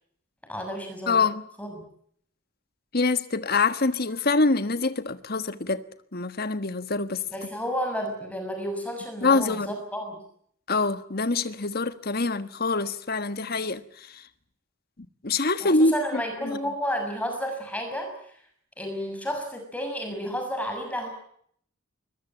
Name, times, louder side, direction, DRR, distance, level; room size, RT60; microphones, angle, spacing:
voice 1, 0.5-1.2 1.6-1.7 7.3-10.2 15.6-18.1 18.8-21.1, equal, 5° left, 6.7 m, -31 dB
voice 2, 1.1-1.5 2.9-5.8 6.1-7.2 9.2-9.7 10.7-14.2 15.2-16.6, left 3 dB, 45° left, 1.5 m, -25 dB
22.0 x 22.0 x 9.0 m
head